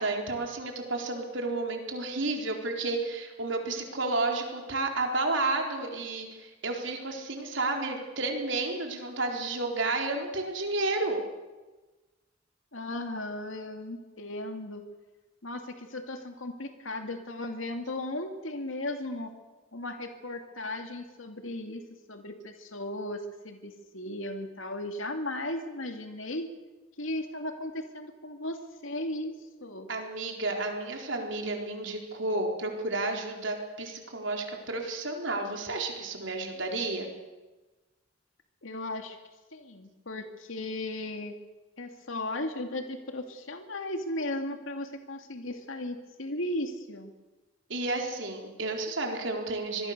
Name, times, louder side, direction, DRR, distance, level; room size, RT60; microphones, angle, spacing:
voice 1, 0.0-11.2 29.9-37.1 47.7-49.9, right 2 dB, 70° right, 2 dB, 4.1 m, -31 dB
voice 2, 12.7-14.8 15.4-19.3 19.7-26.5 27.0-29.9 38.6-39.2 39.5-41.3 41.8-47.1, left 1 dB, 85° left, 5 dB, 2.4 m, -36 dB
25.5 x 21.0 x 6.7 m, 1.2 s
head